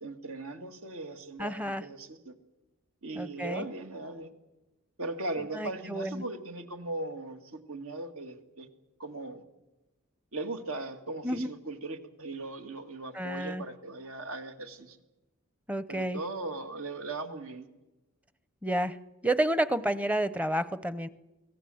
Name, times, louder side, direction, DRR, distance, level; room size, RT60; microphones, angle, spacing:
voice 1, 0.0-2.3 3.0-4.3 5.0-8.7 9.0-9.4 10.3-15.0 15.9-17.7, right 2 dB, 80° right, 6 dB, 2.2 m, -38 dB
voice 2, 1.4-1.9 3.1-3.7 5.5-6.2 11.2-11.5 13.1-13.6 15.7-16.2 18.6-19.0 19.2-21.1, right 1 dB, 5° right, 14 dB, 0.6 m, -30 dB
25.0 x 17.5 x 7.8 m, 1.1 s
head